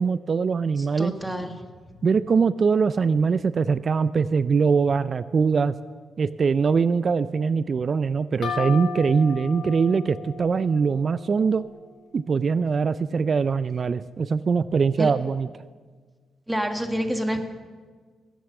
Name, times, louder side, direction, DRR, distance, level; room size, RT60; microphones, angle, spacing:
voice 1, 0.0-1.1 2.0-5.7 6.2-11.6 12.1-15.5, right 5 dB, 50° right, 15 dB, 0.3 m, -22 dB
voice 2, 0.8-2.0 15.0-15.1 16.5-17.4, equal, 5° right, 5 dB, 1.4 m, -29 dB
sound 1, 8.4-12.0, left 5 dB, 70° left, 2.1 m, -35 dB
14.0 x 8.2 x 6.5 m, 1.5 s
cardioid pair, 70°, 0 cm